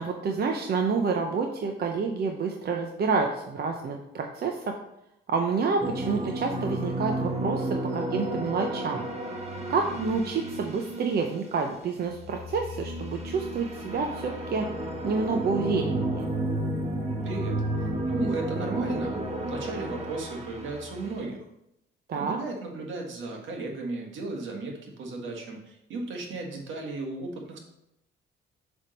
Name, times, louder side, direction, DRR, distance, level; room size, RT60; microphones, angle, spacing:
voice 1, 0.0-4.7 5.3-9.0 9.7-14.7 15.0-16.3 22.1-22.4, right 4 dB, 55° right, 3 dB, 0.7 m, -28 dB
sound 1, 5.8-11.6 12.0-21.2, right 1 dB, 35° right, 1.3 m, -32 dB
voice 2, 17.2-17.6 18.1-21.4 22.1-27.6, right 3 dB, 75° right, 1 dB, 1.6 m, -35 dB
7.1 x 3.6 x 5.2 m, 0.83 s
cardioid pair, 90°, 20 cm